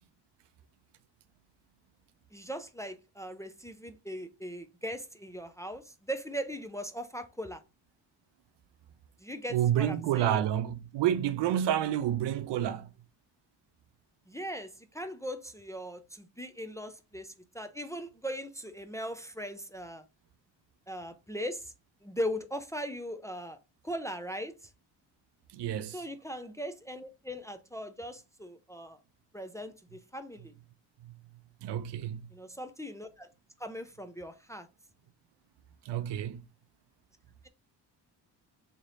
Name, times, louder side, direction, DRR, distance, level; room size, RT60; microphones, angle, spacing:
voice 1, 2.3-7.6 9.2-10.5 14.3-20.0 20.9-21.7 22.0-23.6 23.8-24.5 25.9-29.0 29.3-30.5 32.3-33.3 33.6-34.7, equal, 5° left, 0.4 m, -39 dB
voice 2, 9.5-12.9 25.5-26.0 31.0-31.1 31.6-32.3 35.8-36.4, right 11 dB, 70° right, 0.6 m, -29 dB
3.2 x 2.8 x 3.9 m
supercardioid pair, 55°, 43 cm